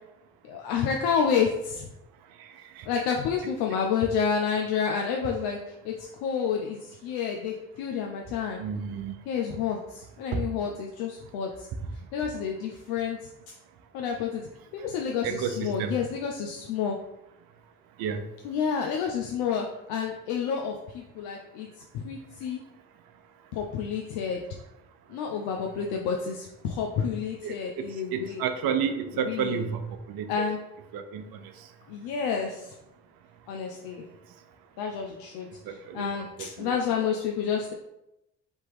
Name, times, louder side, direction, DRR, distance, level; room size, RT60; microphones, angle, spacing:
voice 1, 0.5-1.9 2.9-5.6 5.8-5.9 6.2-8.6 9.3-11.5 12.1-13.2 13.9-17.0 18.4-21.7 21.9-22.6 23.5-24.5 25.1-28.4 29.1-29.5 30.3-30.6 31.9-32.7 33.5-34.0 34.8-37.7, left 6 dB, 75° left, 2 dB, 0.6 m, -29 dB
voice 2, 8.6-9.1 10.3-10.4 15.2-16.0 18.0-18.2 27.4-27.8 28.1-29.8 30.1-30.5 30.9-31.2 35.7-36.1 36.6-36.7, right 7 dB, 70° right, 8 dB, 0.7 m, -30 dB
3.5 x 2.9 x 4.6 m, 0.88 s
hypercardioid pair, 55°, 37 cm